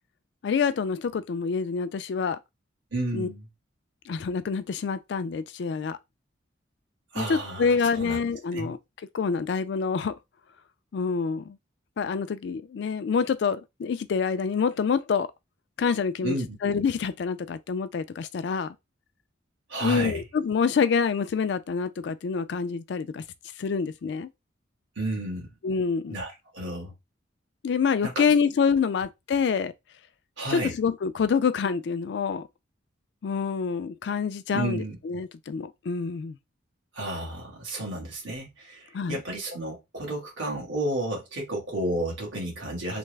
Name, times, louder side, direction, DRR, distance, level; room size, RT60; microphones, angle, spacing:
voice 1, 0.4-2.4 3.1-3.3 4.1-6.0 7.2-8.8 9.1-10.1 10.9-11.6 12.0-15.3 15.8-16.4 16.6-18.7 19.8-23.2 23.6-24.3 25.6-26.2 27.6-29.7 30.5-32.5 33.2-36.4 38.9-39.2, left 5 dB, 65° left, 0.3 m, -26 dB
voice 2, 2.9-3.5 7.1-8.2 8.5-8.7 16.2-16.6 19.7-20.2 24.9-25.5 26.1-26.9 28.0-28.2 30.4-30.7 34.5-35.0 36.9-43.0, right 1 dB, 80° right, 1.6 m, -32 dB
3.3 x 2.0 x 3.2 m
head